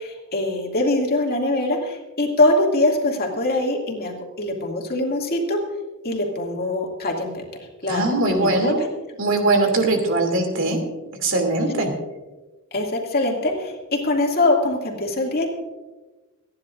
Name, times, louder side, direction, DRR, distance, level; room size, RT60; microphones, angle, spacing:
voice 1, 0.0-5.6 6.0-7.4 7.8-8.9 11.7-11.9 12.7-15.5, left 2 dB, 45° left, 0 dB, 2.4 m, -23 dB
voice 2, 7.9-8.8 9.2-10.8 11.2-11.9, right 2 dB, 65° right, 3 dB, 2.8 m, -21 dB
29.0 x 10.5 x 2.6 m, 1.2 s
head